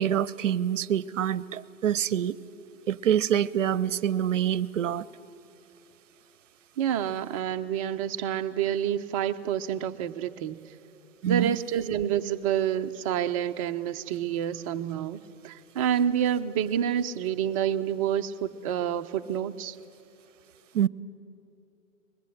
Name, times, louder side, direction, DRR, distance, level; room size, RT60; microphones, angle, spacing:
voice 1, 0.0-2.3 2.9-5.1 11.2-11.6 20.7-20.9, right 10 dB, 60° right, 0.8 m, -26 dB
voice 2, 6.8-10.6 11.2-19.8, right 9 dB, 25° right, 0.6 m, -28 dB
24.0 x 21.0 x 7.7 m
figure-of-eight pair, 125°, 42 cm